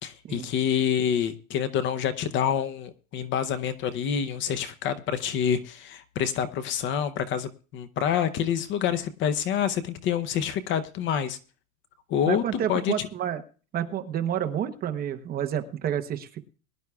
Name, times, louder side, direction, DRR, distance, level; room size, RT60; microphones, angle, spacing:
voice 1, 0.0-11.4 12.1-13.1, left 8 dB, 30° left, 12 dB, 0.7 m, -27 dB
voice 2, 12.3-13.4 13.7-16.4, right 9 dB, 20° right, 7 dB, 0.8 m, -29 dB
22.5 x 11.0 x 2.3 m, 0.37 s
supercardioid pair, 155°, 40 cm